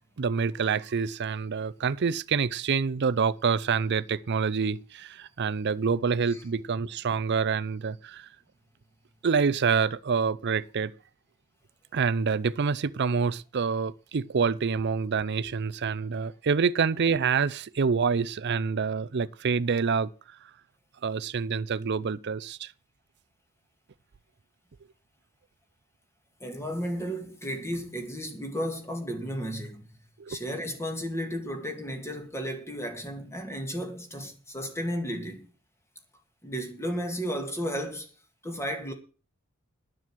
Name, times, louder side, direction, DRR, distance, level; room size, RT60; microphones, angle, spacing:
voice 1, 0.2-8.3 9.2-10.9 11.9-20.1 21.0-22.7 30.2-30.4, right 5 dB, 55° right, 0.5 m, -27 dB
voice 2, 26.4-29.9 30.3-35.5 36.4-38.1 38.4-38.9, equal, 15° left, 2.2 m, -33 dB
9.9 x 7.8 x 7.5 m
head